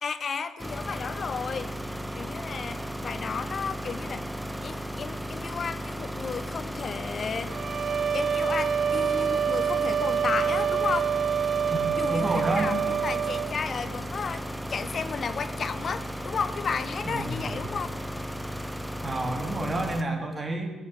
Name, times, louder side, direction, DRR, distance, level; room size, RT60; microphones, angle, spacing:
voice 1, 0.0-1.7 2.1-4.3 4.6-7.5 8.1-11.1 11.9-14.4 14.7-17.9, left 5 dB, 50° left, 12 dB, 1.1 m, -33 dB
sound 1, 0.6-20.0, equal, 5° right, 1.0 m, -35 dB
sound 2, 7.5-13.5, right 8 dB, 50° right, 0.6 m, -27 dB
voice 2, 12.1-12.7 17.0-17.4 19.0-20.7, right 2 dB, 25° right, 2 dB, 3.3 m, -29 dB
19.5 x 6.8 x 8.5 m, 1.3 s
supercardioid pair, 65°, 0 cm